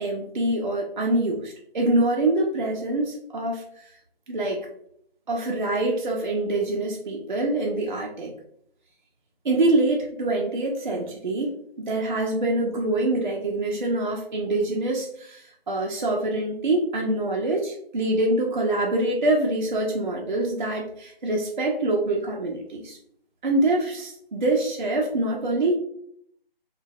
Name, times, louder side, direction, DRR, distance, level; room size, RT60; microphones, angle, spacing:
voice 1, 0.0-3.9 4.3-4.6 5.3-8.3 9.4-23.0 23.4-25.8, right 2 dB, 50° right, -1 dB, 0.5 m, -25 dB
3.0 x 2.2 x 2.6 m, 0.70 s
figure-of-eight pair, 155°, 30 cm